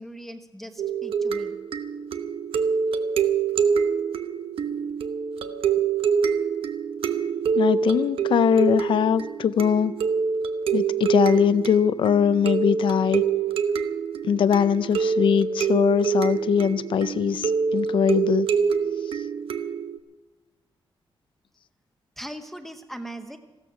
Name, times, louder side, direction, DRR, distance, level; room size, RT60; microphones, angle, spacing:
voice 1, 0.0-1.6 22.2-23.4, right 1 dB, 5° left, 6 dB, 0.8 m, -39 dB
sound 1, 0.8-20.0, right 6 dB, 80° right, 0.9 m, -26 dB
voice 2, 7.5-9.9 10.7-13.2 14.2-18.5, left 8 dB, 65° left, 15 dB, 0.5 m, -21 dB
15.5 x 13.5 x 6.0 m, 1.2 s
wide cardioid pair, 180°, 9 cm